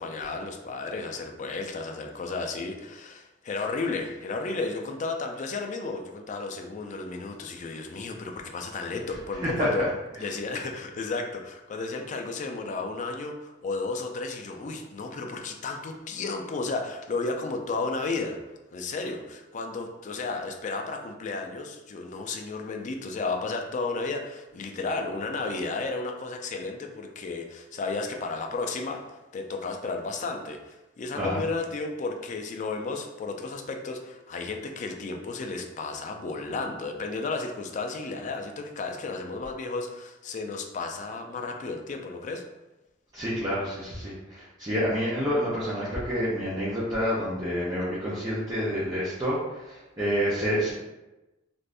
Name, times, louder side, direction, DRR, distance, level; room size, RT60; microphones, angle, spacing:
voice 1, 0.0-9.9 10.2-18.4 18.7-42.4, left 3 dB, 40° left, 4 dB, 0.3 m, -33 dB
voice 2, 43.1-49.4 49.7-50.7, equal, 20° right, -9 dB, 0.6 m, -28 dB
2.5 x 2.5 x 3.3 m, 1.0 s
head